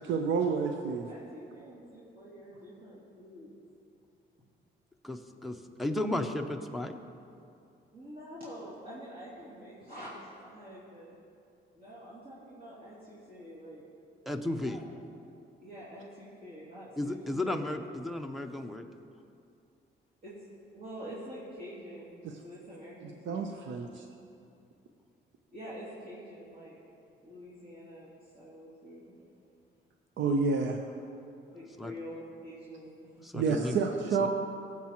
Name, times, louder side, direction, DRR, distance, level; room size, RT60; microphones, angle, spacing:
voice 1, 0.0-1.1 22.2-22.4 23.3-24.0 30.2-30.8 33.3-34.3, right 5 dB, 70° right, 4 dB, 0.7 m, -29 dB
voice 2, 1.0-3.5 7.9-11.2 11.7-13.8 14.6-14.8 15.6-17.2 17.4-17.6 20.2-20.3 20.7-23.6 25.5-26.8 27.2-29.1 31.5-33.6, equal, 45° right, -11 dB, 2.8 m, -46 dB
voice 3, 5.0-7.0 14.3-14.8 17.0-18.8 30.2-30.4 31.8-31.9 33.2-33.8 34.2-34.3, left 1 dB, ahead, 3 dB, 0.7 m, -34 dB
18.5 x 7.4 x 3.0 m, 2.6 s
cardioid pair, 90°, 20 cm